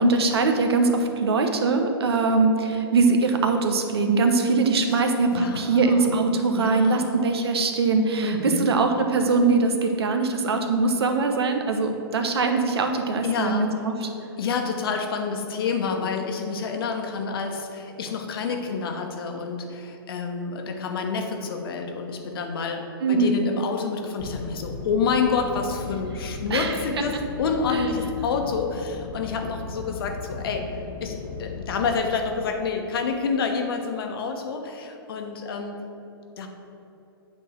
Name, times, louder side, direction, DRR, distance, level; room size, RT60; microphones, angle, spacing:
voice 1, 0.0-14.1 23.0-23.3 26.5-26.7, right 3 dB, 80° right, 5 dB, 1.0 m, -22 dB
voice 2, 5.3-6.2 6.5-7.1 8.2-8.7 13.2-13.7 14.4-35.8 36.4-36.5, left 5 dB, 65° left, 4 dB, 1.1 m, -28 dB
sound 1, 24.2-31.9, left 5 dB, 40° left, 0.8 m, -37 dB
8.4 x 3.8 x 6.4 m, 2.9 s
hypercardioid pair, 135°, 13 cm